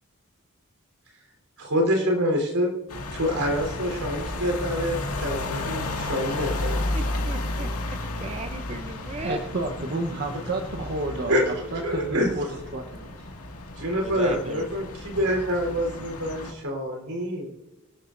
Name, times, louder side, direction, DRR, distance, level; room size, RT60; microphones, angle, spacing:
voice 1, 1.6-2.7 3.1-6.8 11.3-12.3 13.8-17.5, equal, 80° right, 2 dB, 3.9 m, -26 dB
sound 1, 2.9-16.5, left 2 dB, 80° left, 2.1 m, -33 dB
voice 2, 6.9-9.4 10.8-10.9 14.0-14.7, right 2 dB, 30° right, 7 dB, 0.7 m, -36 dB
voice 3, 9.2-13.3, right 2 dB, 50° right, 3 dB, 1.1 m, -31 dB
23.5 x 13.0 x 2.6 m, 1.1 s
head